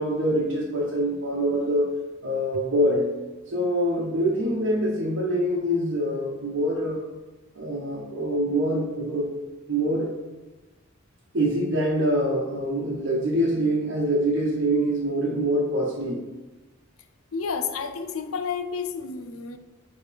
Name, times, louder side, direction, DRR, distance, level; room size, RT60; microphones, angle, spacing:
voice 1, 0.0-1.9 2.2-3.0 3.5-7.0 7.5-9.3 9.7-10.1 11.3-16.2, right 1 dB, 60° right, -5 dB, 1.0 m, -25 dB
voice 2, 17.3-19.6, left 5 dB, 80° left, 8 dB, 0.6 m, -30 dB
9.1 x 3.2 x 3.4 m, 1.1 s
head